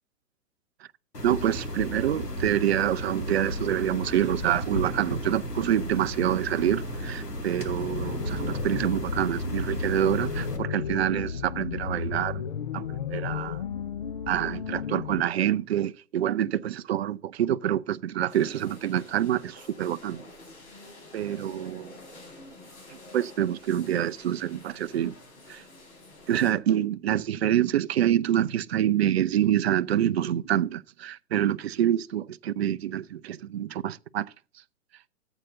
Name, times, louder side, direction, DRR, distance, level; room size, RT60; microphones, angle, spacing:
sound 1, 1.1-10.6, equal, 90° left, 2.6 m, -34 dB
voice 1, 1.2-12.4 12.7-13.6 14.3-20.2 21.1-22.0 23.1-25.2 25.5-25.6 26.3-34.3, right 11 dB, 45° right, 0.5 m, -26 dB
sound 2, 7.8-15.2, left 7 dB, 30° left, 0.4 m, -34 dB
sound 3, 18.3-26.5, left 2 dB, 50° left, 5.0 m, -48 dB
14.0 x 8.0 x 2.6 m
figure-of-eight pair, 125°, 47 cm